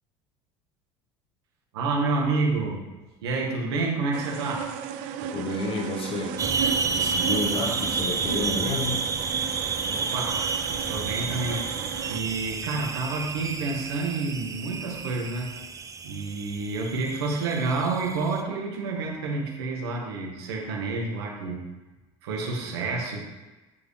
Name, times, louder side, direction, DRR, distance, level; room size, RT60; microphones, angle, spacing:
voice 1, 1.7-2.8 3.2-4.7 7.2-7.7 9.8-15.5 16.0-21.6 22.2-23.2, right 3 dB, 90° right, -1 dB, 1.6 m, -29 dB
sound 1, 4.1-12.2, right 8 dB, 70° right, 0.6 m, -35 dB
voice 2, 5.3-6.5 6.8-9.1, left 2 dB, 45° left, 3 dB, 1.4 m, -30 dB
sound 2, 6.4-18.4, right 5 dB, 25° right, 0.5 m, -30 dB
9.1 x 5.1 x 3.4 m, 1.1 s
supercardioid pair, 90°, 13 cm